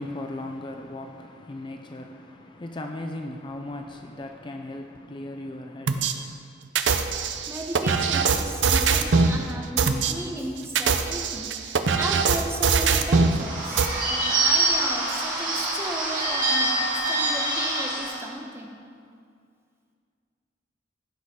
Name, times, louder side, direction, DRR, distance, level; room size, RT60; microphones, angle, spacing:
voice 1, 0.0-6.4, left 1 dB, 25° left, 0.4 m, -37 dB
sound 1, 5.9-6.1 6.8-9.4 9.8-10.1 10.6-13.4 13.8-13.9, right 5 dB, 80° right, 0.6 m, -22 dB
voice 2, 7.5-18.8, right 1 dB, 15° right, 0.8 m, -35 dB
Bird / Bell, 13.2-18.2, right 2 dB, 45° right, 2.7 m, -25 dB
15.0 x 6.3 x 3.7 m
head